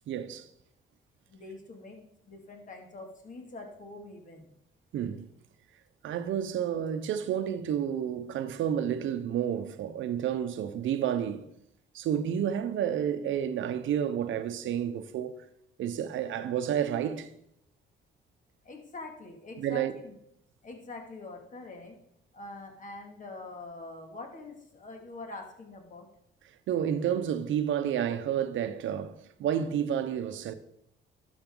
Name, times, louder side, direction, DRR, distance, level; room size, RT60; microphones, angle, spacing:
voice 1, 0.1-0.5 4.9-5.3 6.0-11.4 11.9-15.3 15.8-17.3 19.6-19.9 26.7-29.1 29.4-30.5, right 9 dB, 75° right, 0.9 m, -30 dB
voice 2, 1.3-4.5 18.6-20.1 20.6-22.0 22.3-26.1, left 2 dB, 40° left, 2.4 m, -44 dB
12.0 x 7.1 x 3.9 m
cardioid pair, 90°, 20 cm